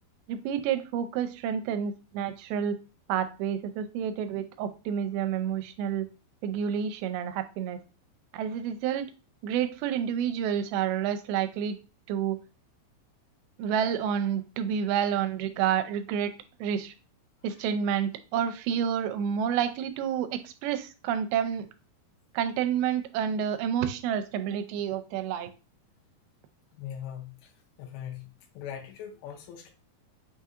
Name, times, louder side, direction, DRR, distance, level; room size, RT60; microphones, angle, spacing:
voice 1, 0.3-2.8 3.1-6.1 6.4-7.8 8.3-9.1 9.4-11.8 12.1-12.4 13.6-16.3 16.6-16.9 17.4-21.7 22.3-25.5, right 8 dB, 85° right, 8 dB, 2.4 m, -29 dB
voice 2, 26.8-27.5 27.8-29.7, left 9 dB, 90° left, 2 dB, 2.6 m, -40 dB
5.9 x 2.7 x 2.4 m, 0.32 s
omnidirectional pair, 4.4 m